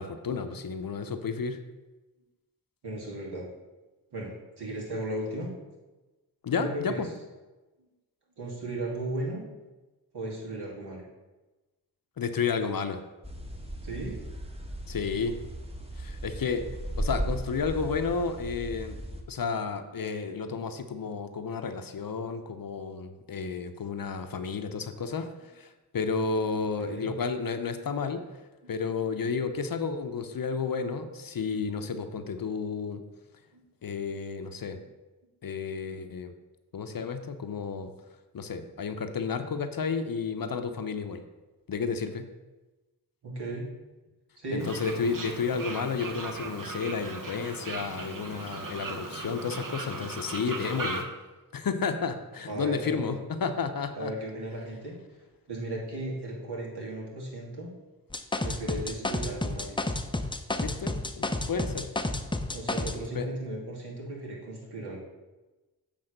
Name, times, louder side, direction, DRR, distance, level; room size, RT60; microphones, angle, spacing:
voice 1, 0.0-1.6 6.4-7.1 12.2-13.0 14.9-15.4 16.0-16.6 17.0-19.0 19.3-25.3 25.6-28.2 28.7-33.0 33.8-34.8 35.4-36.3 36.7-37.9 38.3-41.2 41.7-42.3 44.5-51.1 51.5-54.1 60.6-61.9 63.1-63.3, left 5 dB, 55° left, 8 dB, 0.8 m, -32 dB
voice 2, 2.8-3.5 4.1-4.3 4.6-5.5 6.5-7.0 8.4-9.4 10.1-11.0 13.8-14.2 26.8-27.1 28.6-28.7 33.5-33.6 43.2-43.7 44.4-44.7 52.5-53.0 53.9-55.0 55.5-57.7 58.4-59.8 62.5-65.0, right 1 dB, 65° right, -3 dB, 2.5 m, -36 dB
sound 1, 13.2-19.2, right 1 dB, 15° right, 1.3 m, -36 dB
Fowl, 44.6-51.0, right 3 dB, 50° right, 1.3 m, -38 dB
sound 2, 58.1-63.0, left 2 dB, 10° left, 0.6 m, -30 dB
7.8 x 3.4 x 6.5 m, 1.1 s
cardioid pair, 40°, 42 cm